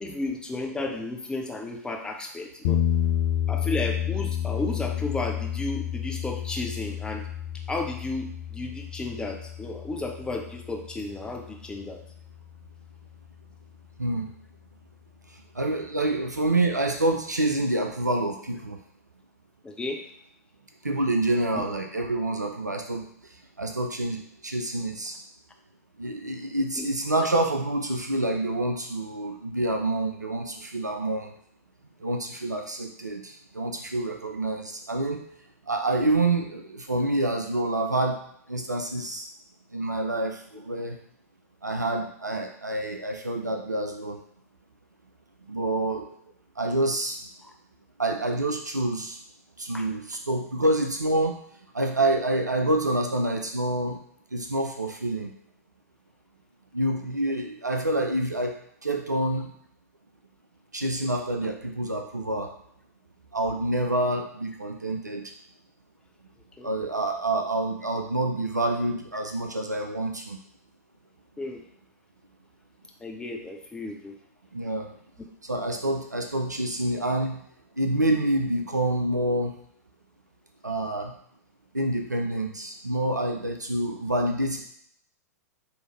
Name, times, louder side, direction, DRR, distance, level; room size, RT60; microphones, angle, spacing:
voice 1, 0.0-2.8 3.5-7.3 7.7-12.0 19.6-20.0 21.5-21.6 26.8-26.9 47.4-47.5 49.7-49.8 66.6-66.7 71.4-71.6 73.0-74.1, left 2 dB, 10° left, 2 dB, 0.6 m, -33 dB
sound 1, 2.6-12.7, left 10 dB, 50° left, 0.5 m, -30 dB
voice 2, 14.0-14.3 15.5-18.8 20.8-23.1 23.6-25.1 26.0-31.3 32.0-35.2 35.7-38.2 38.5-39.3 39.7-41.0 41.6-44.2 45.5-46.1 46.6-47.2 48.0-49.2 49.6-51.4 51.7-54.0 54.3-55.3 56.7-58.6 58.8-59.5 60.7-62.5 63.3-65.2 66.6-70.4 74.5-74.9 75.4-77.4 77.8-79.5 80.6-81.1 81.7-84.6, right 1 dB, 90° right, 3 dB, 0.5 m, -27 dB
4.7 x 2.8 x 3.1 m, 0.68 s
figure-of-eight pair, 100°, 9 cm